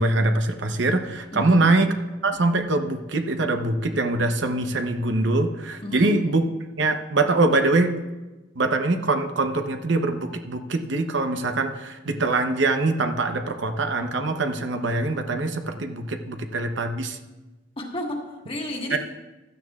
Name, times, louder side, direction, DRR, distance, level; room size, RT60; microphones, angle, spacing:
voice 1, 0.0-1.9 2.2-6.4 6.8-7.9 8.6-17.2 18.9-19.0, right 2 dB, 65° right, 6 dB, 0.8 m, -23 dB
voice 2, 1.3-1.7 5.8-6.2 17.8-19.0, left 1 dB, 30° left, 0 dB, 1.5 m, -32 dB
16.0 x 12.5 x 2.4 m, 1.1 s
head